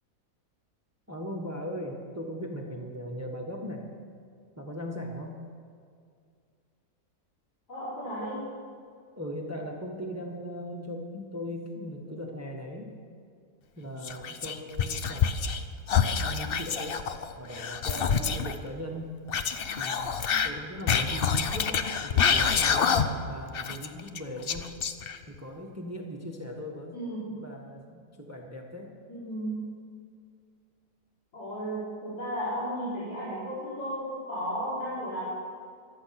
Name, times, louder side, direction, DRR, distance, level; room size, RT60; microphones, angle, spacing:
voice 1, 1.1-3.9 4.6-5.4 9.2-13.0 13.8-15.3 16.2-17.0 17.4-19.1 19.7-24.7 25.3-27.0 27.4-28.9, equal, 10° right, 0 dB, 1.3 m, -38 dB
voice 2, 7.7-8.5 26.9-27.4 29.1-29.7 31.3-35.3, equal, 70° left, -12 dB, 4.9 m, -34 dB
Whispering, 14.0-15.6 15.9-18.5 19.3-23.3 23.5-25.4, left 7 dB, 55° left, 0.6 m, -27 dB
24.0 x 8.4 x 5.9 m, 2.2 s
omnidirectional pair, 1.8 m